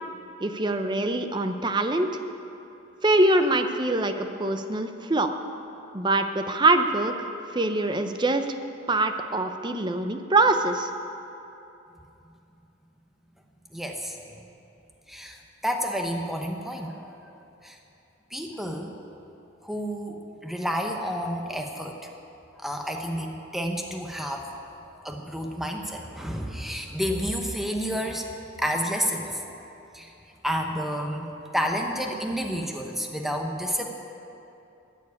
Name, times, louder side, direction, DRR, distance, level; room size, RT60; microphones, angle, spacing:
voice 1, 0.4-2.1 3.0-5.3 5.9-7.1 7.5-8.4 8.9-10.9, right 2 dB, 25° right, 7 dB, 0.6 m, -23 dB
voice 2, 13.7-14.4 15.1-17.2 17.6-17.8 18.3-19.0 19.6-22.0 22.6-24.5 24.9-29.6 29.9-30.1 30.4-33.9, equal, ahead, 2 dB, 0.9 m, -30 dB
13.5 x 7.2 x 9.6 m, 2.8 s
head